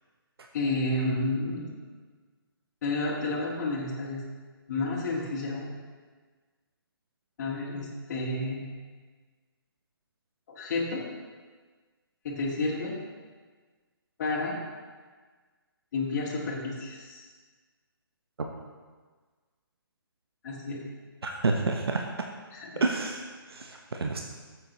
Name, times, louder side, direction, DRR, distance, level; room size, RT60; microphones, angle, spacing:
voice 1, 0.5-1.7 2.8-4.2 4.7-5.7 7.4-8.7 10.5-11.0 12.2-13.0 14.2-14.6 15.9-17.3 20.4-20.8 22.5-22.8, left 2 dB, 45° left, -5 dB, 2.0 m, -31 dB
voice 2, 21.2-22.1 22.8-24.2, right 3 dB, 80° right, 2 dB, 0.9 m, -29 dB
13.0 x 7.8 x 3.1 m, 1.4 s
figure-of-eight pair, 145°, 13 cm